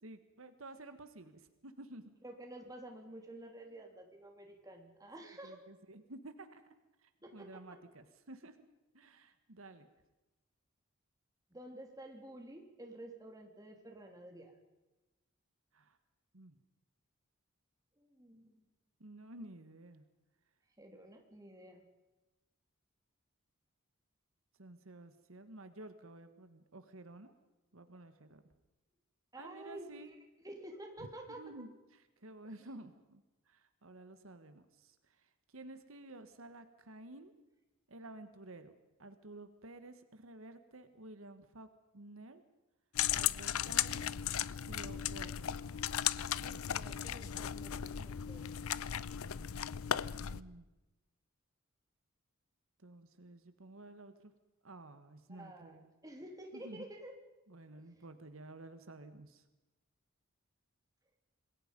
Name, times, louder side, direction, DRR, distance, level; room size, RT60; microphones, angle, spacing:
voice 1, 0.0-2.1 5.2-6.7 7.0-8.6 8.9-9.9 15.7-16.0 16.3-16.6 19.0-20.0 24.6-27.3 27.7-28.4 29.4-30.1 31.4-31.7 32.2-37.3 37.9-38.7 39.0-41.7 41.9-42.4 43.1-44.1 44.7-45.5 50.2-50.7 52.8-54.3 54.6-55.9 56.5-56.9 57.5-59.4, right 2 dB, 75° right, 10 dB, 1.5 m, -52 dB
voice 2, 2.2-5.6 7.2-7.8 11.5-14.5 18.0-18.6 20.8-21.9 29.3-31.4 46.4-48.5 55.3-57.1 57.8-57.9, right 1 dB, 15° right, 3 dB, 3.0 m, -51 dB
sound 1, 43.0-50.4, left 10 dB, 85° left, 0.6 m, -36 dB
27.0 x 20.5 x 5.3 m, 1.1 s
head